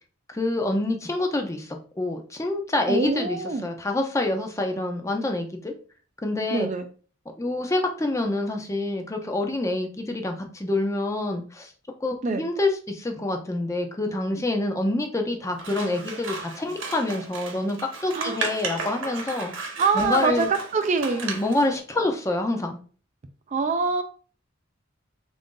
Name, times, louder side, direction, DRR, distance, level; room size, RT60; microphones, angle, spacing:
voice 1, 0.3-5.7 6.2-6.7 7.4-11.7 12.0-20.5 21.2-22.8, left 2 dB, 15° left, 4 dB, 0.5 m, -27 dB
voice 2, 2.9-3.7 6.5-6.9 12.2-12.4 18.1-18.4 19.8-21.2 23.5-24.0, right 4 dB, 35° right, 7 dB, 0.4 m, -24 dB
Scissors, 15.5-21.7, right 4 dB, 65° right, 0.9 m, -35 dB
3.7 x 2.6 x 3.6 m, 0.39 s
head